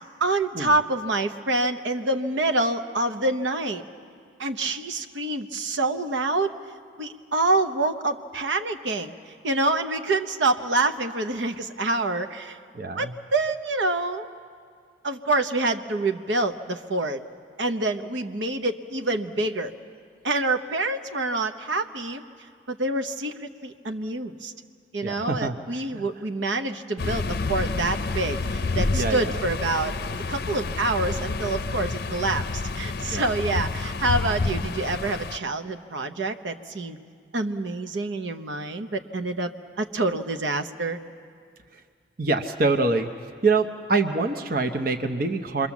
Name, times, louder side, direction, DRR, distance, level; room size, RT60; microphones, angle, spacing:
voice 1, 0.2-3.8 4.4-6.5 7.0-9.1 9.4-12.6 13.0-14.3 15.0-17.2 17.6-19.7 20.2-22.2 22.7-23.3 23.6-24.5 24.9-29.9 30.3-32.4 32.8-37.0 37.3-39.5 39.8-41.0, right 2 dB, 75° right, 6 dB, 0.9 m, -26 dB
voice 2, 12.7-13.1 25.0-25.5 25.9-26.0 28.9-29.4 33.1-33.3 42.2-43.1 43.4-45.7, right 3 dB, 50° right, 6 dB, 0.8 m, -25 dB
sound 1, 27.0-35.4, left 3 dB, 50° left, 0.6 m, -29 dB
28.0 x 22.0 x 7.2 m, 2.1 s
head